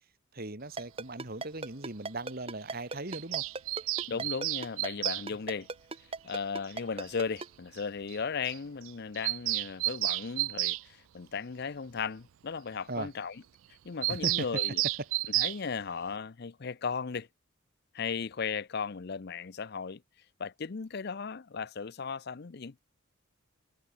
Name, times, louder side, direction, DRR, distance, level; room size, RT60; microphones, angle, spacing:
voice 1, 0.3-3.5 4.1-4.2 12.9-13.1 14.1-14.5, right 2 dB, 45° right, 2.1 m, -38 dB
Ringtone, 0.8-7.5, right 3 dB, 30° right, 1.8 m, -37 dB
Bird vocalization bird call bird song, 3.1-5.3 6.7-6.8 7.0-7.1 7.4-7.5 7.8-7.9 8.1-8.2 8.5-8.6 8.9-10.8 14.0-15.6, right 20 dB, 75° right, 0.3 m, -31 dB
voice 2, 4.1-5.7 6.2-13.4 13.8-14.8 15.3-17.3 17.9-20.0 20.4-22.8, left 5 dB, 50° left, 0.6 m, -36 dB
head